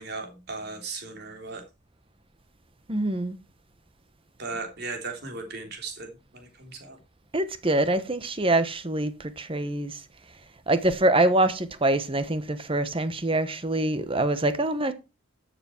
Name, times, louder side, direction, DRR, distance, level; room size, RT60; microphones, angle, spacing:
voice 1, 0.0-1.6 4.4-7.0, right 3 dB, 55° right, 3.5 m, -37 dB
voice 2, 2.9-3.4 7.3-10.0 10.7-14.9, right 2 dB, 25° right, 1.1 m, -25 dB
13.0 x 7.1 x 4.5 m
head